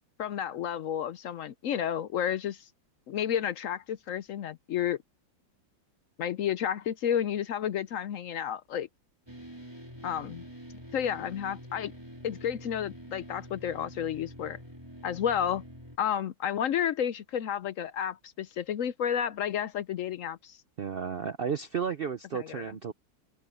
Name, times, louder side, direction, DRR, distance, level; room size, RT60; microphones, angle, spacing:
voice 1, 0.2-2.7 3.1-5.0 6.2-8.9 10.0-10.4 10.9-11.9 12.2-14.6 15.0-15.6 16.0-20.6 22.3-22.6, left 9 dB, 70° left, 0.7 m, -31 dB
sound 1, 9.3-16.0, equal, 15° right, 4.4 m, -46 dB
voice 2, 20.8-22.9, right 7 dB, 75° right, 0.5 m, -33 dB
open air
omnidirectional pair, 2.0 m